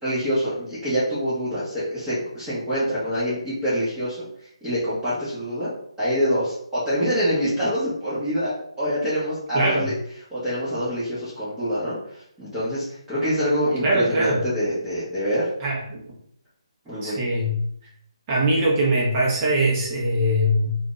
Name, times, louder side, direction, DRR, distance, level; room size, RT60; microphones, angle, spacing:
voice 1, 0.0-4.3 4.6-5.7 6.0-9.9 10.3-12.0 12.4-15.5 16.9-17.2, equal, 10° right, -13 dB, 1.1 m, -25 dB
voice 2, 9.5-9.9 13.8-14.4 15.6-16.0 17.0-17.5 18.3-20.8, right 1 dB, 25° right, -4 dB, 1.0 m, -22 dB
2.6 x 2.5 x 3.9 m, 0.68 s
hypercardioid pair, 155°, 3 cm